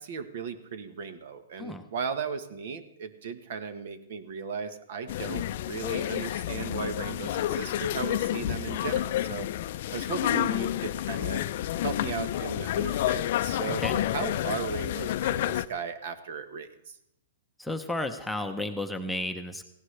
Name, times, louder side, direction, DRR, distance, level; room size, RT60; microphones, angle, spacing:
voice 1, 0.0-9.5 9.9-11.4 11.8-13.8 14.1-17.0, right 6 dB, 60° right, 11 dB, 1.3 m, -36 dB
sound 1, 5.1-15.7, left 13 dB, 55° left, 0.5 m, -29 dB
voice 2, 17.6-19.6, left 1 dB, ahead, 4 dB, 0.8 m, -32 dB
18.0 x 16.0 x 3.3 m, 0.82 s
hypercardioid pair, 150°, 0 cm